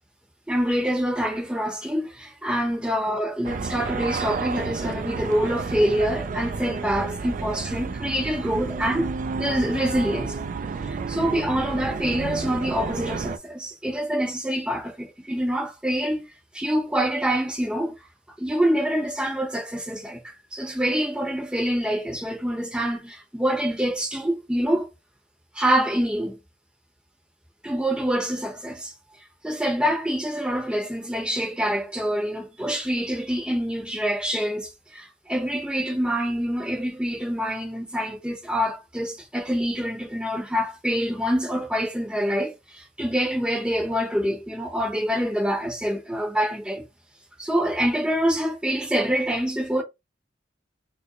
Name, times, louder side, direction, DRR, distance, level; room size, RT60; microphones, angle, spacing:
voice 1, 0.5-9.1 9.4-10.4 10.8-16.3 16.5-17.9 18.4-24.9 25.5-26.4 27.6-28.9 29.4-46.8 47.4-49.8, equal, 5° right, 0.8 m, -26 dB
sound 1, 3.4-13.4, right 4 dB, 45° right, 0.3 m, -31 dB
4.6 x 2.0 x 3.0 m
head